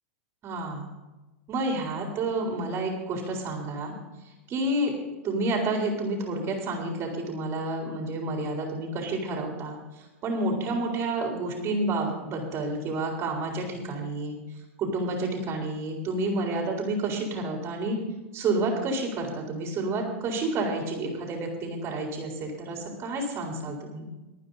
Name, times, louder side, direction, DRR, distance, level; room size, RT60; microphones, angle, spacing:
voice 1, 0.4-0.9 1.5-3.9 4.5-4.9 5.2-9.8 10.2-14.4 14.8-18.0 18.3-24.1, right 2 dB, 35° right, 0 dB, 4.1 m, -29 dB
23.5 x 9.4 x 4.1 m, 1.1 s
hypercardioid pair, 110°, 7 cm